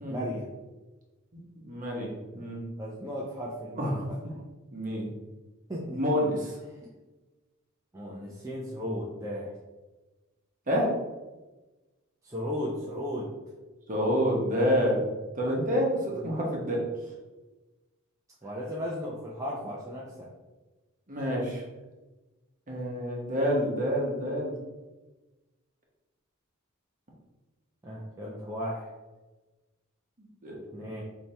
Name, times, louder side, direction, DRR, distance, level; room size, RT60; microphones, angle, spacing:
voice 1, 0.1-0.5 2.8-4.4 5.7-6.1 6.8-6.9 7.9-9.5 12.2-13.3 16.1-16.3 18.4-20.3 27.8-28.9 30.7-31.0, equal, 15° right, -5 dB, 0.5 m, -36 dB
voice 2, 1.6-2.6 3.8-4.1 4.7-5.1 6.0-6.6 10.7-10.9 13.9-15.1 15.3-16.8 21.1-21.6 22.7-24.5 30.4-30.5, equal, 40° right, -2 dB, 1.1 m, -28 dB
3.4 x 2.8 x 4.2 m, 1.2 s
head